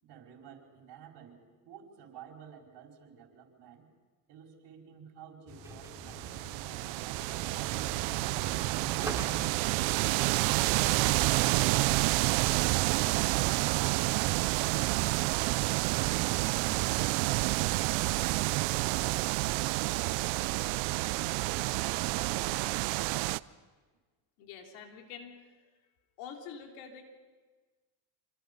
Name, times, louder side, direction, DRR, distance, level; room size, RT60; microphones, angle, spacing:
voice 1, 0.0-3.9 4.3-9.3, right 8 dB, 60° right, 1 dB, 5.2 m, -52 dB
sound 1, 5.5-19.2, left 3 dB, 25° left, 5.5 m, -54 dB
sound 2, 5.6-10.9, right 2 dB, 5° right, 2.9 m, -45 dB
sound 3, 5.8-23.4, right 22 dB, 75° right, 0.7 m, -29 dB
voice 2, 24.4-25.7 26.2-27.0, left 7 dB, 80° left, 3 dB, 3.5 m, -46 dB
26.5 x 26.0 x 5.5 m, 1.4 s
supercardioid pair, 100°, 45 cm